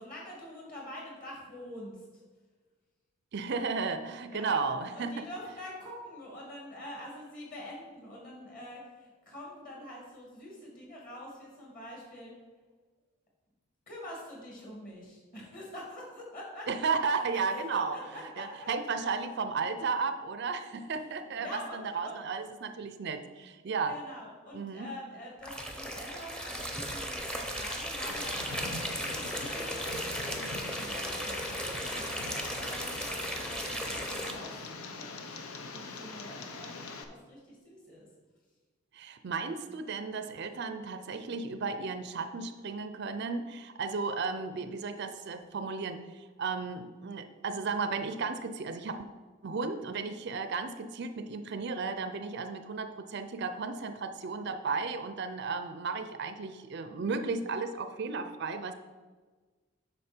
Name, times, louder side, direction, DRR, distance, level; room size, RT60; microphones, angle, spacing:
voice 1, 0.0-2.0 4.3-4.6 4.9-12.3 13.9-18.7 20.9-22.2 23.9-34.6 35.0-38.1, left 1 dB, 40° left, -3 dB, 2.6 m, -46 dB
voice 2, 3.3-5.2 16.7-18.0 18.4-24.0 24.5-24.9 38.9-49.1 49.4-58.7, right 4 dB, 50° right, 9 dB, 0.4 m, -34 dB
sound 1, 25.4-34.3, equal, 5° left, 0.7 m, -36 dB
Tick, 28.1-37.0, left 3 dB, 85° left, 0.8 m, -42 dB
8.4 x 6.1 x 4.4 m, 1.4 s
head